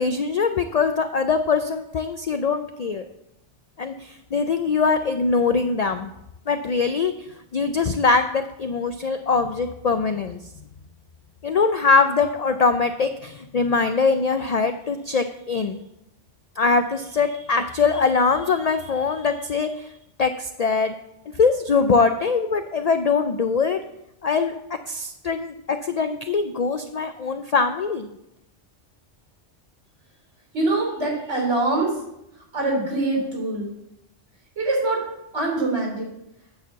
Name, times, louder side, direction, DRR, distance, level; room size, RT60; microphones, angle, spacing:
voice 1, 0.0-3.0 3.8-6.1 6.5-7.1 7.5-10.4 11.4-15.8 16.6-19.9 20.2-20.9 21.4-23.8 24.2-24.5 24.9-28.1, left 4 dB, 80° left, 8 dB, 0.3 m, -22 dB
voice 2, 30.5-32.0 32.5-33.7 34.6-35.0 35.3-36.1, right 2 dB, 80° right, -2 dB, 3.6 m, -24 dB
8.5 x 4.6 x 7.0 m, 0.84 s
omnidirectional pair, 1.2 m